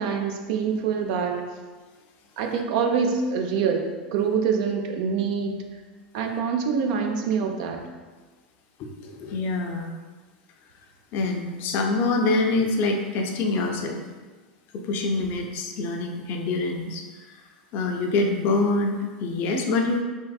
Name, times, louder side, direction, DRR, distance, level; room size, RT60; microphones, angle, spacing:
voice 1, 0.0-1.4 2.4-5.5 6.1-7.8, right 6 dB, 65° right, 3 dB, 0.4 m, -25 dB
voice 2, 8.8-9.9 11.1-14.0 14.7-17.4 17.7-20.0, left 3 dB, 50° left, 3 dB, 0.4 m, -25 dB
3.6 x 2.5 x 2.3 m, 1.3 s
hypercardioid pair, 95°, 5 cm